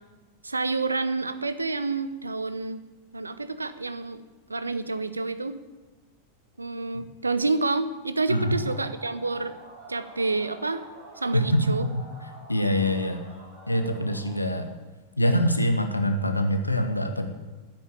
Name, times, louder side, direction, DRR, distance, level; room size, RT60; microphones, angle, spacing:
voice 1, 0.4-2.8 3.1-4.2 4.5-5.6 6.6-9.6 9.9-10.8 11.2-11.9, right 3 dB, 80° right, 12 dB, 0.8 m, -28 dB
sound 1, 8.2-14.4, right 1 dB, 50° right, 4.0 m, -48 dB
voice 2, 11.3-11.9 12.5-13.2 13.7-14.7 15.2-17.3, equal, 85° left, 7 dB, 1.1 m, -24 dB
10.0 x 8.4 x 8.4 m, 1.3 s
figure-of-eight pair, 90°, 0 cm